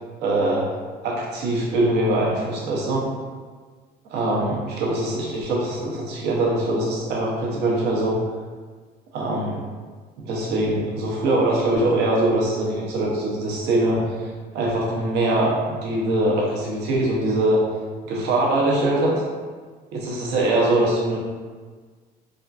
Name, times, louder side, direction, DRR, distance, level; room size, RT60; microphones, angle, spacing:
voice 1, 0.2-0.7 1.0-3.0 4.1-8.2 9.1-9.6 10.2-14.0 14.5-17.6 18.0-19.2 19.9-21.2, right 1 dB, 85° right, -4 dB, 0.8 m, -22 dB
3.5 x 2.5 x 2.4 m, 1.5 s
cardioid pair, 110°, 17 cm